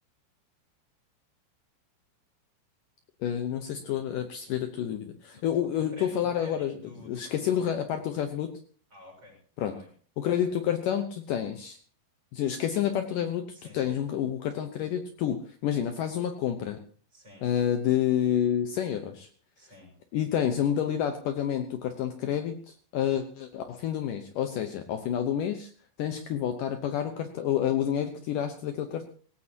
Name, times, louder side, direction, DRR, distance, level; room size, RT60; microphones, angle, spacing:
voice 1, 3.2-6.7 7.0-8.5 9.6-9.8 10.2-11.8 12.3-16.8 17.4-19.3 20.1-25.7 26.0-29.1, left 10 dB, 85° left, 7 dB, 1.9 m, -29 dB
voice 2, 5.3-7.7 8.9-9.4 9.6-9.9 10.3-10.7 13.5-14.0 17.1-17.5 19.5-19.9, left 1 dB, 25° right, 0 dB, 6.8 m, -50 dB
19.0 x 17.5 x 2.9 m, 0.42 s
omnidirectional pair, 5.2 m